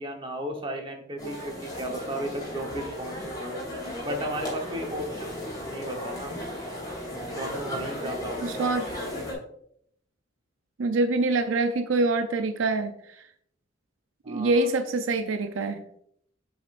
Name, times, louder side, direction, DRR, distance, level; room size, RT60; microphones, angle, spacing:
voice 1, 0.0-3.6 4.0-5.3 5.6-6.5 7.4-8.7 14.2-14.7, equal, 25° right, 2 dB, 1.1 m, -35 dB
sound 1, 1.2-9.3, left 1 dB, 20° left, 2.7 m, -35 dB
voice 2, 8.4-8.9 10.8-13.0 14.3-15.8, right 2 dB, 75° right, 8 dB, 0.5 m, -25 dB
7.5 x 6.5 x 2.5 m, 0.70 s
head